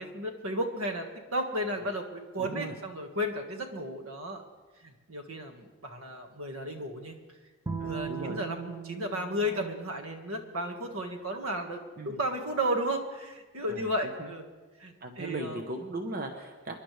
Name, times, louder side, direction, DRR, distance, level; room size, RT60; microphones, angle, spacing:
voice 1, 0.0-4.4 4.8-7.2 7.8-11.8 12.0-14.5 14.8-15.6, equal, 75° right, 4 dB, 1.7 m, -34 dB
voice 2, 2.4-2.7 7.8-8.4 12.0-12.2 13.7-13.9 14.2-14.3 15.0-16.7, right 2 dB, 45° right, 4 dB, 1.0 m, -37 dB
Bowed string instrument, 7.7-10.9, right 6 dB, 20° right, 0.8 m, -40 dB
29.0 x 11.0 x 3.3 m, 1.3 s
head